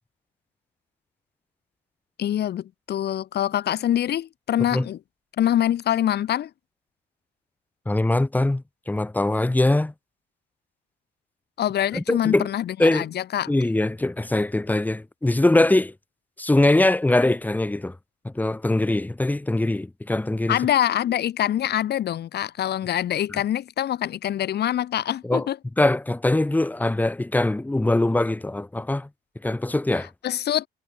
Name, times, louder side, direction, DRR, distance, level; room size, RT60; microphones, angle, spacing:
voice 1, 2.2-5.0 5.4-6.5 11.6-13.5 20.5-25.6 30.2-30.7, left 11 dB, 60° left, 7.4 m, -24 dB
voice 2, 7.9-9.9 11.9-12.5 12.8-13.1 13.5-15.9 16.4-18.0 18.2-20.6 23.3-23.4 25.2-25.5 25.8-29.1 29.4-30.1, left 2 dB, 10° left, 2.6 m, -22 dB
cardioid pair, 120°, 19 cm